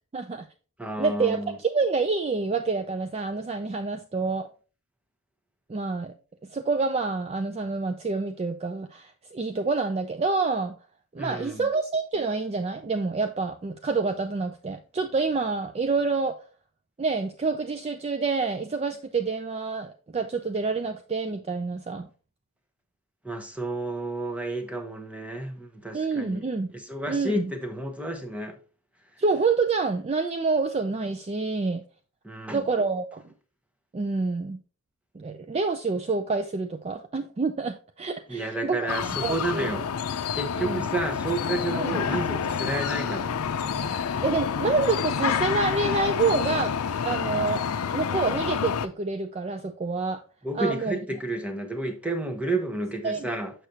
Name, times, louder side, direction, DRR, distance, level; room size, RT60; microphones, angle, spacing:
voice 1, 0.1-0.5 1.0-4.5 5.7-6.1 6.5-10.8 11.1-16.4 17.0-22.1 25.9-26.7 27.1-27.5 29.2-31.8 32.5-33.2 33.9-34.6 35.1-39.8 40.6-40.9 41.7-42.0 44.2-46.8 47.0-47.6 47.9-50.2 50.5-51.0 53.0-53.3, right 4 dB, 30° right, 0.3 m, -27 dB
voice 2, 0.8-1.6 11.2-11.7 23.2-26.4 26.7-28.6 32.2-32.7 38.3-39.8 40.3-43.3 50.4-53.5, right 2 dB, 5° right, 0.8 m, -31 dB
sound 1, 38.9-48.9, left 7 dB, 90° left, 0.5 m, -28 dB
6.6 x 6.4 x 2.8 m
head